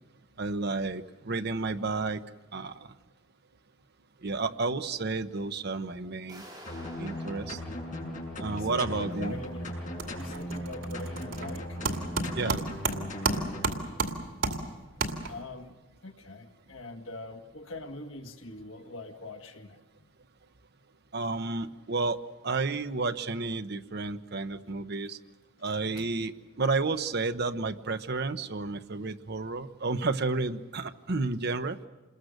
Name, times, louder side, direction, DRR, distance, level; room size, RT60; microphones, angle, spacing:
voice 1, 0.4-2.2 2.5-2.9 4.2-6.4 7.0-7.6 8.4-9.4 12.4-12.6 21.1-22.2 22.4-25.2 25.6-31.8, right 3 dB, 55° right, 8 dB, 0.9 m, -31 dB
sound 1, 6.3-9.1, equal, 20° right, 5.6 m, -50 dB
sound 2, 6.7-13.7, equal, 40° left, 6.6 m, -38 dB
voice 2, 8.5-9.7 10.2-11.8 15.3-15.7 16.0-19.8 26.0-26.1, left 2 dB, 80° left, 4 dB, 1.7 m, -43 dB
sound 3, 9.1-9.5 9.8-15.6, right 3 dB, 85° right, 2.4 m, -33 dB
27.5 x 21.0 x 6.6 m, 1.2 s
head